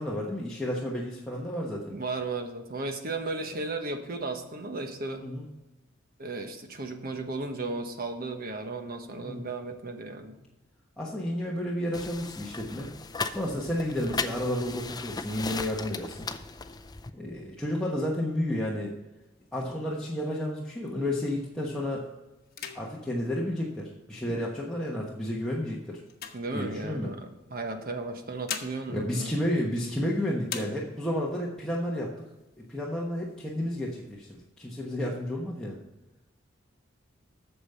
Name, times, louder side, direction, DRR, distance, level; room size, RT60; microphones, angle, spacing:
voice 1, 0.0-2.0 5.2-5.5 9.2-9.4 11.0-12.9 13.3-16.3 17.1-18.9 19.5-22.1 22.7-26.0 26.5-27.1 28.9-32.3 32.7-35.8, left 1 dB, 5° left, -5 dB, 1.2 m, -31 dB
voice 2, 1.9-5.2 6.2-10.4 24.3-24.4 26.3-29.3, right 3 dB, 50° right, 5 dB, 1.2 m, -35 dB
sound 1, 11.9-17.1, left 4 dB, 20° left, 0.5 m, -37 dB
sound 2, 19.2-21.4 21.9-22.1 22.4-24.4 25.0-27.2 28.1-30.1 30.4-31.3 31.7-31.8 32.1-32.8 33.2-34.1, left 7 dB, 55° left, 1.1 m, -44 dB
8.6 x 6.9 x 5.6 m, 1.0 s
head